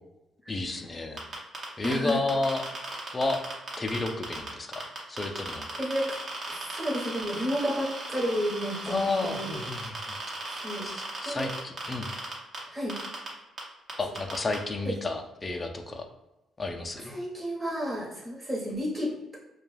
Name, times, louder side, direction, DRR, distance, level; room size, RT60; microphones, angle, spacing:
voice 1, 0.5-1.2 1.8-2.6 3.1-3.4 3.8-4.8 5.1-5.6 8.9-10.0 10.8-12.1 14.0-16.0 16.6-17.1, left 2 dB, 25° left, 4 dB, 0.4 m, -31 dB
sound 1, 1.2-4.5 4.7-12.6 12.9-13.3 13.6-13.7 13.9-14.6, right 2 dB, 50° right, 0.9 m, -36 dB
voice 2, 1.8-2.2 5.8-6.2 6.5-9.7 10.6-10.9 11.2-11.5 12.7-12.9 14.8-14.9 17.0-19.4, equal, 20° right, -4 dB, 1.0 m, -31 dB
2.3 x 2.2 x 3.2 m, 0.98 s
cardioid pair, 90°, 0 cm